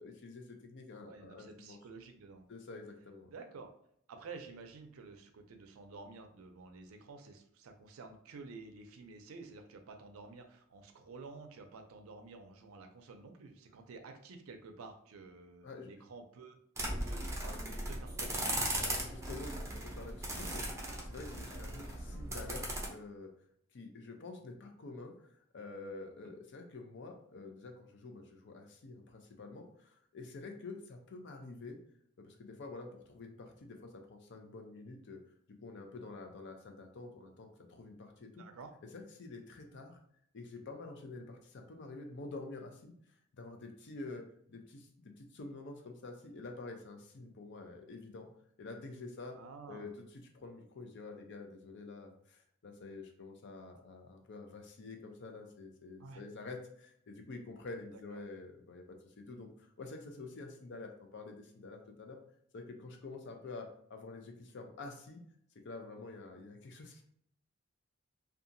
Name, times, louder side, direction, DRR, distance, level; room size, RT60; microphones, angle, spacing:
voice 1, 0.0-1.8 2.5-3.3 15.6-15.9 18.8-23.3 23.7-31.8 32.2-35.2 35.6-38.4 38.9-40.0 40.3-42.9 43.4-48.3 48.6-49.4 49.7-62.2 62.5-65.2 65.6-67.0, left 3 dB, 60° left, 4 dB, 0.5 m, -48 dB
voice 2, 1.0-2.5 3.2-3.7 4.1-16.6 17.1-18.6 38.4-38.7 49.4-49.9 56.0-56.2 57.9-58.2, right 4 dB, 85° right, 6 dB, 0.4 m, -51 dB
sound 1, 16.8-22.9, right 1 dB, 15° right, 0.5 m, -38 dB
2.7 x 2.3 x 2.5 m, 0.68 s
head